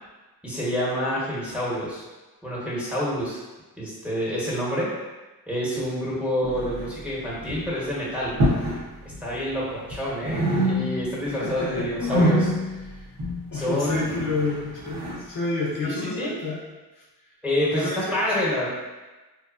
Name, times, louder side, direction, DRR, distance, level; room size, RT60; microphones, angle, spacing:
voice 1, 0.4-2.0 2.4-3.4 3.8-4.9 5.5-8.3 9.2-12.5 13.5-14.3 15.8-16.4 17.4-18.7, equal, 5° right, -7 dB, 1.0 m, -27 dB
sound 1, 6.4-7.1 7.4-7.7 8.3-8.8 9.1-10.0 10.2-11.2 11.5-15.2, equal, 75° right, 0.9 m, -26 dB
voice 2, 11.3-11.9 12.9-13.1 13.5-16.6 16.9-17.1 17.7-18.5, left 3 dB, 55° left, -5 dB, 0.6 m, -30 dB
2.8 x 2.1 x 2.4 m, 1.2 s
cardioid pair, 65°, 39 cm